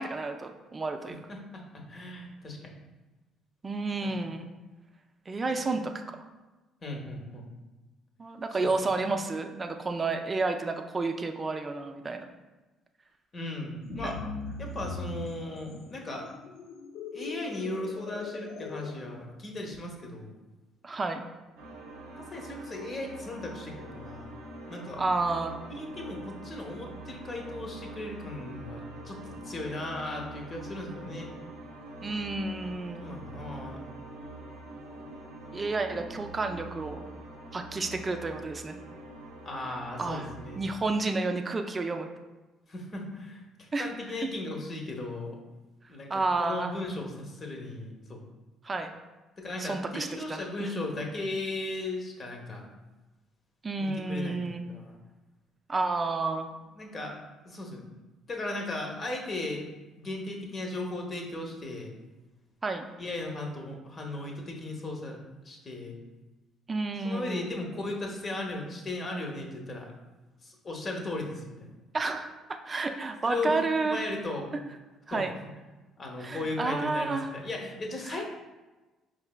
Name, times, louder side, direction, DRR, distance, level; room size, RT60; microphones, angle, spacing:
voice 1, 0.0-1.2 3.6-4.5 5.3-5.9 8.2-12.3 13.9-14.1 20.8-21.2 25.0-25.6 32.0-33.1 35.5-37.0 37.5-38.8 40.0-40.3 40.6-42.1 43.7-43.9 44.2-44.3 46.1-46.7 48.6-48.9 49.6-50.7 53.6-54.6 55.7-56.5 62.6-62.9 66.7-67.5 71.9-72.3 72.6-74.0 75.1-75.3 76.2-77.3 78.0-78.2, right 3 dB, 30° right, 5 dB, 0.4 m, -31 dB
voice 2, 1.3-2.6 4.0-4.2 5.4-5.8 6.8-7.5 8.6-8.7 9.0-9.2 13.3-14.2 14.6-16.3 17.1-20.3 22.1-24.3 24.7-25.0 25.7-31.3 32.9-33.8 39.5-40.6 42.7-45.4 45.9-48.3 49.4-52.7 53.8-55.0 56.8-57.2 57.4-57.8 58.3-59.6 60.0-61.9 63.0-65.2 65.4-66.0 67.0-69.9 70.4-71.7 73.3-73.6 73.8-74.5 75.1-75.2 76.0-78.2, left 2 dB, 40° left, 2 dB, 0.8 m, -37 dB
sound 1, 13.8-18.9, left 4 dB, 70° left, 0.3 m, -40 dB
sound 2, 21.6-40.6, right 1 dB, 85° right, 0.6 m, -44 dB
4.7 x 3.2 x 2.2 m, 1.2 s
hypercardioid pair, 60°, 0 cm